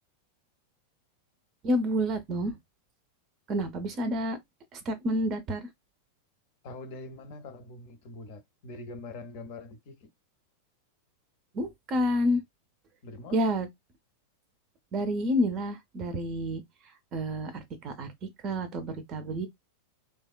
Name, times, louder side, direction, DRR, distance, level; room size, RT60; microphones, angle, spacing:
voice 1, 1.6-2.6 3.5-4.4 4.7-5.7 11.5-12.4 13.3-13.7 14.9-16.6 17.1-19.5, equal, 30° right, 0.5 m, -29 dB
voice 2, 6.6-10.1 13.0-13.5, left 2 dB, 45° left, 0.7 m, -43 dB
2.7 x 2.1 x 2.3 m
figure-of-eight pair, 90°, 0 cm